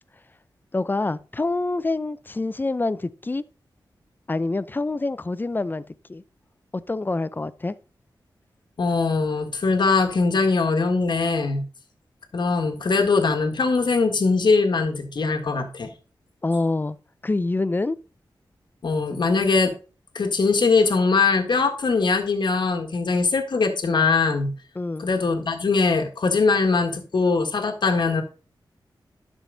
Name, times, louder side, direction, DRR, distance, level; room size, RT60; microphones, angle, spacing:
voice 1, 0.7-3.4 4.3-5.8 6.1-6.2 6.7-7.7 16.4-17.0 17.2-18.0 24.8-25.1, left 2 dB, 25° left, 0.5 m, -26 dB
voice 2, 8.8-11.7 12.3-15.9 18.8-19.7 20.2-24.5 25.0-28.2, left 4 dB, 65° left, 1.8 m, -21 dB
11.5 x 6.3 x 4.0 m
wide cardioid pair, 90°, 8 cm